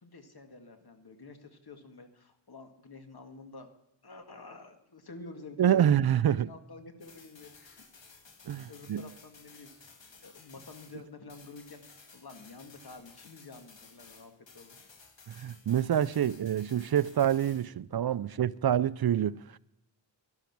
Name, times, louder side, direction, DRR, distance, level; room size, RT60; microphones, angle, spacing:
voice 1, 0.0-3.7 4.0-5.9 6.2-7.8 8.7-9.7 10.2-14.8, left 3 dB, 55° left, 2.1 m, -49 dB
voice 2, 5.6-6.5 8.5-9.0 15.3-19.6, right 10 dB, 60° right, 0.5 m, -27 dB
sound 1, 7.0-11.0 11.3-17.7, left 4 dB, 80° left, 2.1 m, -55 dB
12.0 x 12.0 x 6.0 m
wide cardioid pair, 80°, 44 cm